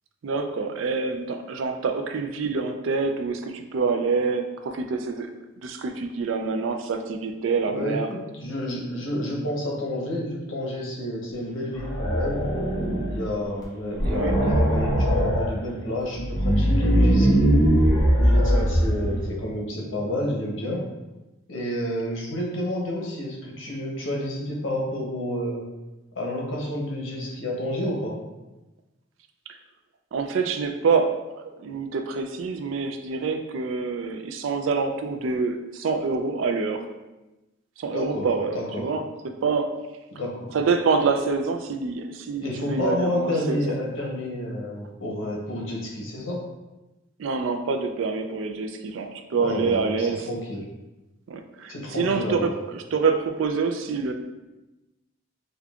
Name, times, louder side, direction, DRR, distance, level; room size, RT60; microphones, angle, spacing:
voice 1, 0.2-5.3 5.6-8.1 14.0-14.3 18.5-18.6 29.5-29.6 30.1-36.8 37.8-39.7 40.5-43.6 47.2-50.3 51.3-54.1, right 4 dB, 75° right, 6 dB, 0.4 m, -26 dB
voice 2, 7.7-12.4 13.1-17.5 18.2-20.8 21.5-25.6 26.1-28.1 37.9-38.3 38.5-38.9 40.1-40.5 42.4-46.4 49.4-50.7 51.7-52.5, left 1 dB, 75° left, -2 dB, 0.8 m, -30 dB
sound 1, 11.8-13.3 13.6-13.7 14.0-15.5 16.1-19.3, equal, 20° left, 0.7 m, -21 dB
5.1 x 2.3 x 2.3 m, 1.0 s
head